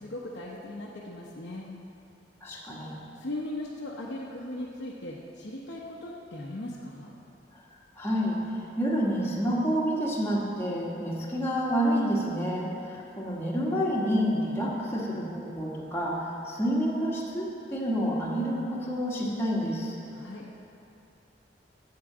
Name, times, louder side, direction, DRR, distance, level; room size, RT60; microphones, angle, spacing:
voice 1, 0.0-1.7 3.2-7.1 20.1-20.4, left 1 dB, 70° left, -6 dB, 1.0 m, -38 dB
voice 2, 2.4-3.0 7.5-7.6 8.0-16.2 16.4-19.9, equal, 15° left, -5 dB, 1.6 m, -28 dB
8.6 x 7.2 x 7.4 m, 2.8 s
head